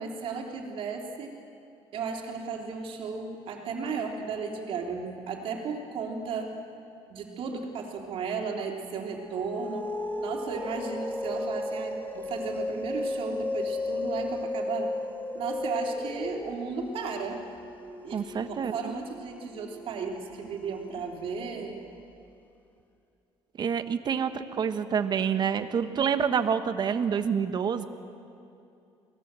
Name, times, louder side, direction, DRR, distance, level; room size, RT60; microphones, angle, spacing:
voice 1, 0.0-1.3 1.9-6.5 7.1-9.9 10.2-15.0 15.3-17.4 18.0-21.8, right 5 dB, 60° right, 1 dB, 3.3 m, -35 dB
sound 1, 9.1-21.9, left 2 dB, 15° left, 1.5 m, -35 dB
voice 2, 18.1-18.9 23.6-27.8, right 7 dB, 40° right, 9 dB, 1.2 m, -27 dB
24.5 x 17.5 x 7.6 m, 2.6 s
cardioid pair, 105°, 11 cm